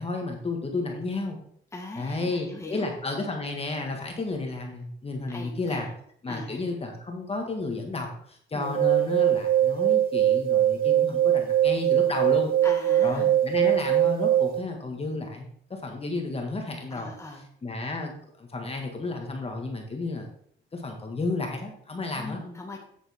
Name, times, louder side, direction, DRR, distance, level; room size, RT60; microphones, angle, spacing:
voice 1, 0.0-1.4 2.0-5.9 6.2-12.5 13.0-17.1 17.6-18.1 18.4-20.3 20.7-22.4, left 3 dB, 30° left, 2 dB, 1.8 m, -32 dB
voice 2, 1.7-2.9 5.3-5.9 6.3-6.6 8.5-8.9 12.6-13.3 16.9-17.4 22.1-22.8, left 2 dB, 15° left, 0 dB, 1.7 m, -40 dB
sound 1, 8.6-14.6, right 11 dB, 50° right, 0.4 m, -22 dB
8.7 x 7.1 x 3.6 m, 0.64 s
cardioid pair, 90°, 20 cm